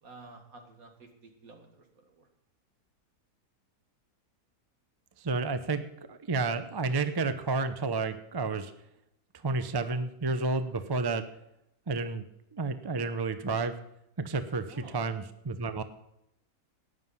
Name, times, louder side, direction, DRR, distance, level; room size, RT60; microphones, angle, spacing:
voice 1, 0.0-1.1 1.4-2.3 14.7-15.0, right 3 dB, 65° right, 3 dB, 2.4 m, -51 dB
voice 2, 5.2-5.8 6.1-8.7 9.4-11.2 11.9-12.3 12.5-13.7 14.2-15.8, right 3 dB, 25° right, 10 dB, 0.5 m, -30 dB
13.0 x 9.9 x 5.6 m, 0.81 s
omnidirectional pair, 1.6 m